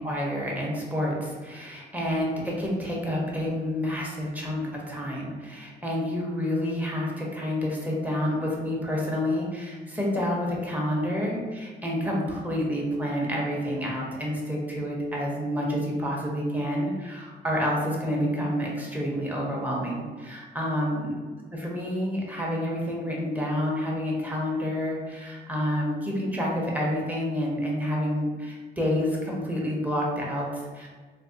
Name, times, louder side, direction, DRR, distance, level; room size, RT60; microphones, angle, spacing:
voice 1, 0.0-21.1 21.5-30.9, equal, 10° right, -3 dB, 0.9 m, -29 dB
3.3 x 2.8 x 2.6 m, 1.4 s
cardioid pair, 90°, 20 cm